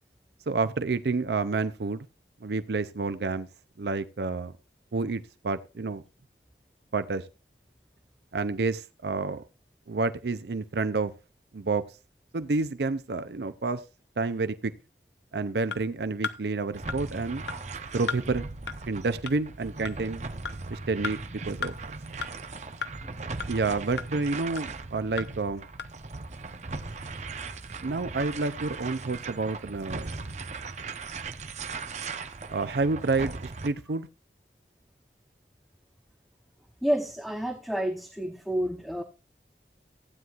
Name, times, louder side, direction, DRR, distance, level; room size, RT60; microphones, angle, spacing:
voice 1, 0.5-2.1 2.4-3.5 3.8-4.5 4.9-6.0 6.9-7.2 8.3-9.4 9.9-11.1 11.5-11.9 12.3-13.8 14.2-14.7 15.3-17.4 17.9-18.5 18.9-20.2 20.7-21.2 21.5-21.9 23.5-25.6 27.8-30.1 32.5-34.1, right 3 dB, 70° right, 0.5 m, -29 dB
sound 1, 15.7-15.8 16.2-16.4 16.9-17.0 17.5-17.6 18.1-18.2 18.7-18.8 19.3-19.4 19.9-20.0 20.5-20.6 21.0-21.2 21.6-21.7 22.2-22.3 22.8-22.9 23.4-23.5 24.0-24.1 24.6-24.7 25.2-25.3 25.8-25.9, left 5 dB, 80° left, 0.9 m, -33 dB
sound 2, 16.7-33.7, right 3 dB, 40° right, 0.7 m, -38 dB
voice 2, 36.8-39.0, equal, ahead, 0.8 m, -29 dB
15.5 x 9.4 x 2.4 m
head